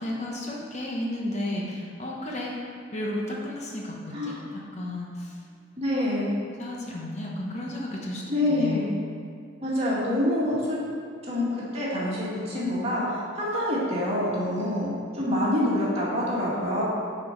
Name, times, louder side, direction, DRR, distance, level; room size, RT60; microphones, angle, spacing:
voice 1, 0.0-2.5 2.9-5.4 6.4-8.2 8.5-8.9, left 1 dB, 40° left, -2 dB, 1.0 m, -33 dB
voice 2, 5.8-6.2 8.3-8.8 9.6-10.8 11.3-16.8, left 1 dB, 35° right, -7 dB, 2.1 m, -26 dB
10.0 x 4.6 x 4.5 m, 2.2 s
head